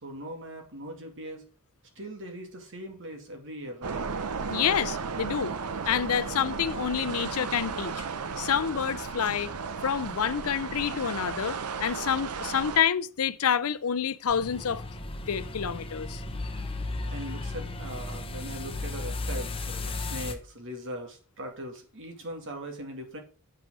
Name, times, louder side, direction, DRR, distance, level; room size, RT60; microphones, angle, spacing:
voice 1, 0.0-1.4 2.0-4.0 17.1-23.2, equal, 60° right, 2.3 m, -40 dB
sound 1, 3.8-12.8, right 5 dB, 80° right, 0.7 m, -34 dB
voice 2, 4.5-5.5 5.9-8.0 8.4-9.5 9.8-14.8 15.3-16.2, left 8 dB, 75° left, 0.6 m, -28 dB
sound 2, 14.3-20.3, left 2 dB, 25° left, 1.0 m, -35 dB
7.6 x 5.4 x 6.0 m
head